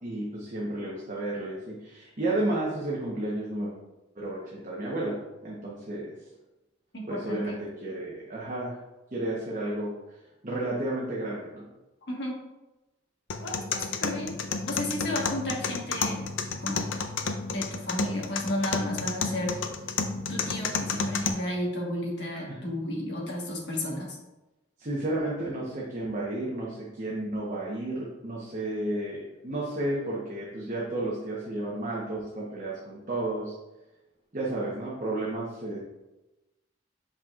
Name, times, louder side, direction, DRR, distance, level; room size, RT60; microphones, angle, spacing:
voice 1, 0.0-3.7 4.2-5.2 5.4-6.1 7.1-7.5 7.8-8.8 9.1-9.9 10.4-11.6 24.8-33.5 34.3-35.8, right 1 dB, 40° right, -5 dB, 1.0 m, -32 dB
voice 2, 6.9-7.6 12.1-12.4 13.4-14.3 14.7-16.2 16.6-16.9 17.5-19.6 20.3-24.2, left 1 dB, 65° left, -2 dB, 1.6 m, -33 dB
sound 1, 13.3-21.3, left 5 dB, 80° left, 0.5 m, -31 dB
7.1 x 5.5 x 2.5 m, 1.0 s
head